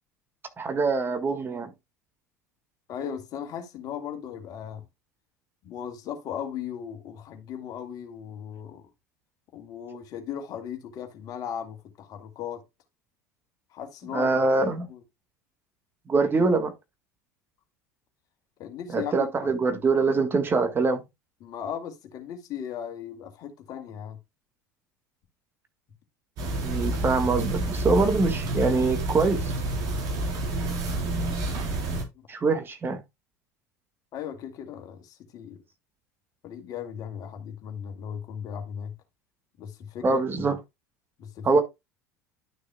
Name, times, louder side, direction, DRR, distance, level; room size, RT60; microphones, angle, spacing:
voice 1, 0.6-1.7 14.1-14.9 16.1-16.7 18.9-21.0 26.6-29.5 32.3-33.0 40.0-40.6 41.4-41.6, right 3 dB, 25° right, 1.7 m, -24 dB
voice 2, 2.9-4.8 5.6-8.9 9.5-12.6 13.7-14.3 14.9-15.0 18.6-19.5 21.4-24.2 32.2-32.3 34.1-35.6 36.4-38.9 39.6-40.2 41.2-41.6, left 8 dB, 45° left, 2.2 m, -37 dB
sound 1, 26.4-32.0, right 2 dB, 45° right, 4.1 m, -29 dB
12.0 x 6.4 x 2.2 m
figure-of-eight pair, 70°, 9 cm